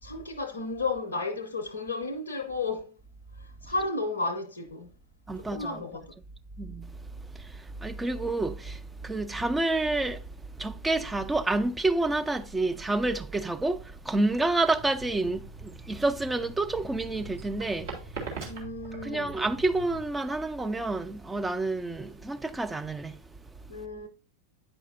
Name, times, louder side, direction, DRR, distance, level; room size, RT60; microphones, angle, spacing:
voice 1, 0.0-2.8 3.4-4.9 5.4-6.1 18.4-19.3 23.7-24.1, left 3 dB, 75° left, 0.5 m, -33 dB
voice 2, 5.3-5.8 6.6-6.9 7.4-10.2 10.6-17.9 19.0-23.1, right 2 dB, 10° right, 0.4 m, -29 dB
sound 1, 14.7-20.1, right 1 dB, 40° right, 3.7 m, -47 dB
sound 2, 16.9-22.7, right 4 dB, 55° right, 1.7 m, -42 dB
8.9 x 4.9 x 2.6 m
figure-of-eight pair, 90°, 0 cm